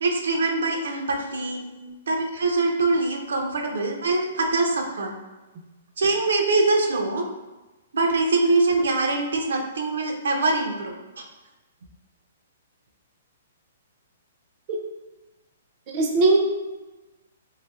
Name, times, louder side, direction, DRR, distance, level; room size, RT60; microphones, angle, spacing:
voice 1, 0.0-1.6 2.1-5.1 6.0-7.3 7.9-10.9, right 3 dB, 90° right, 2 dB, 0.5 m, -23 dB
voice 2, 15.9-16.4, right 3 dB, 25° right, -1 dB, 0.4 m, -20 dB
3.2 x 3.0 x 2.3 m, 1.1 s
hypercardioid pair, 175°, 0 cm